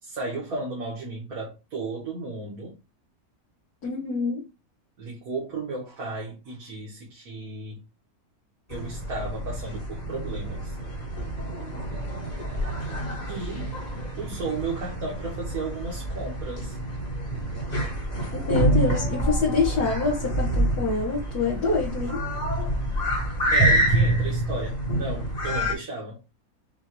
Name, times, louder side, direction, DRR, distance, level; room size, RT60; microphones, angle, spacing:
voice 1, 0.0-2.8 5.0-7.8 8.7-10.8 13.3-13.7 14.2-16.8 23.5-26.2, right 3 dB, 75° right, 1.9 m, -34 dB
voice 2, 3.8-4.4 18.5-22.2, left 4 dB, 80° left, 2.0 m, -26 dB
sound 1, 8.7-25.7, right 1 dB, 30° left, 1.4 m, -27 dB
6.5 x 2.5 x 3.1 m
omnidirectional pair, 1.6 m